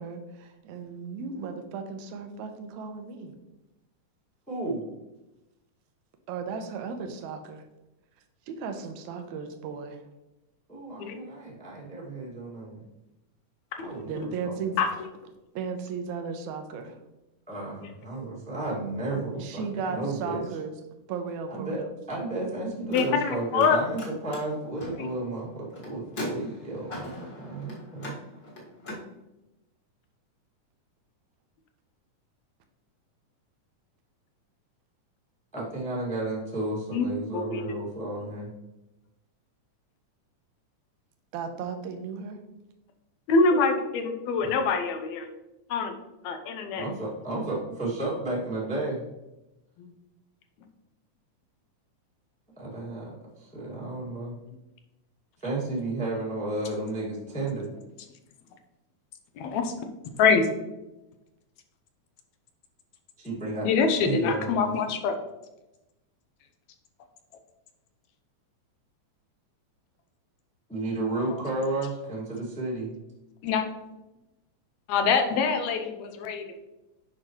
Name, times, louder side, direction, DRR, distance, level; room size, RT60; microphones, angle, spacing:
voice 1, 0.0-3.4 6.3-7.6 8.5-10.0 14.1-14.7 15.5-17.0 19.4-20.7 21.1-21.9 41.3-42.4, right 5 dB, 75° right, 6 dB, 2.1 m, -35 dB
voice 2, 4.5-4.8 10.7-12.8 13.8-14.8 17.5-20.4 21.5-21.8 22.1-28.2 35.5-38.5 44.4-44.5 46.7-49.1 52.6-54.3 55.4-57.7 63.2-63.7 64.0-64.8 70.7-72.9, right 2 dB, 5° left, -5 dB, 1.1 m, -33 dB
Car, 22.8-23.7 23.9-29.0, left 1 dB, 35° left, 1.8 m, -40 dB
voice 3, 22.9-23.8 25.0-25.1 36.9-37.1 37.3-37.7 43.3-45.3 45.7-45.9 46.2-46.9 49.8-49.9 59.4-59.7 60.2-60.5 63.6-65.2 71.3-71.4 73.4-73.6 74.9-76.6, left 5 dB, 75° left, 6 dB, 1.9 m, -25 dB
8.8 x 5.8 x 3.1 m, 0.98 s
omnidirectional pair, 3.6 m